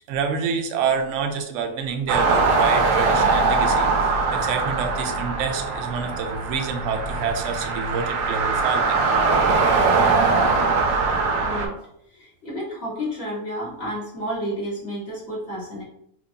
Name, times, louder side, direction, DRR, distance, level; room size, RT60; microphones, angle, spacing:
voice 1, 0.1-9.0, right 6 dB, 65° right, 5 dB, 0.7 m, -27 dB
sound 1, 2.1-11.7, right 4 dB, 90° right, 1.2 m, -21 dB
voice 2, 11.4-11.7 12.1-15.8, equal, 40° left, -8 dB, 1.8 m, -31 dB
4.5 x 2.5 x 2.7 m, 0.76 s
omnidirectional pair, 1.7 m